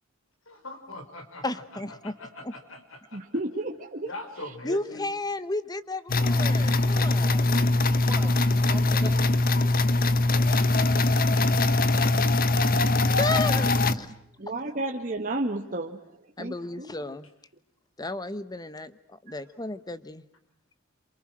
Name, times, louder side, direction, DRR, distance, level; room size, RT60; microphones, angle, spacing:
voice 1, 0.6-3.2 4.0-5.1, left 1 dB, 85° left, 6 dB, 5.7 m, -41 dB
voice 2, 1.4-2.1 2.4-2.5 4.6-7.5 9.0-9.1 13.2-14.1 16.4-17.3 18.0-20.2, left 2 dB, 20° left, 14 dB, 1.2 m, -33 dB
voice 3, 3.1-4.1 4.4-4.5 14.4-16.0 16.4-16.9, right 2 dB, 40° right, 2 dB, 1.8 m, -32 dB
sound 1, 6.1-13.9, left 2 dB, 45° left, 1.4 m, -22 dB
voice 4, 7.7-8.3 8.6-10.2 14.3-14.4 16.4-16.5, right 1 dB, 15° right, -3 dB, 3.7 m, -45 dB
28.5 x 27.5 x 6.2 m, 0.75 s
head